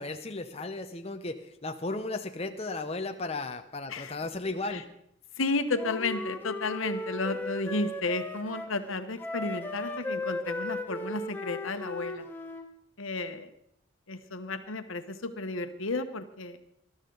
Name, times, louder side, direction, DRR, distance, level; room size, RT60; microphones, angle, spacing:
voice 1, 0.0-4.8, left 2 dB, 30° left, 5 dB, 0.7 m, -35 dB
voice 2, 5.4-12.2 13.0-13.5 14.1-16.6, left 3 dB, 80° left, 9 dB, 1.1 m, -32 dB
Wind instrument woodwind instrument, 5.7-8.7 9.2-12.7, left 2 dB, 10° left, 1.1 m, -36 dB
20.0 x 12.5 x 3.9 m, 0.72 s
head